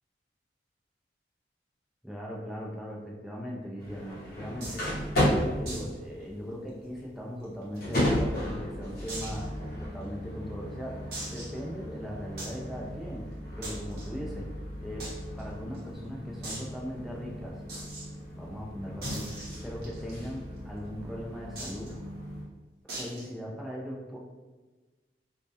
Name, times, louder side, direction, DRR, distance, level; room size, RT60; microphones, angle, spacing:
voice 1, 2.0-9.5 9.8-13.3 13.5-14.5 14.8-15.1 15.4-17.6 18.4-19.3 19.6-22.0 22.9-24.2, equal, ahead, -4 dB, 0.3 m, -39 dB
sound 1, 3.8-22.4, left 1 dB, 55° left, 0.7 m, -35 dB
sound 2, 4.6-4.9 5.7-5.9 6.2-6.3 6.7-6.8 7.4-8.2 9.1-9.4 10.0-10.1 11.1-11.6 12.4-12.6 13.6-14.1 15.0-15.1 15.4-15.5 15.7-15.8 16.4-16.7 17.7-18.0 19.0-20.1 21.6-21.9 22.9-23.3, right 1 dB, 60° right, 0.8 m, -39 dB
2.2 x 2.0 x 2.7 m, 1.2 s
head